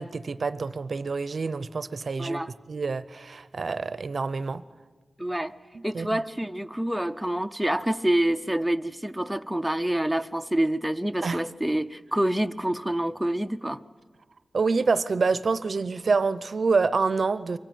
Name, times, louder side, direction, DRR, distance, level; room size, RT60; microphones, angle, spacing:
voice 1, 0.0-4.6 5.9-6.2 11.2-11.4 14.5-17.6, right 4 dB, 55° right, 0.6 m, -27 dB
voice 2, 2.2-2.5 5.2-5.6 5.8-13.8, right 1 dB, ahead, 0.6 m, -27 dB
23.5 x 15.5 x 9.2 m
wide cardioid pair, 135°, 0 cm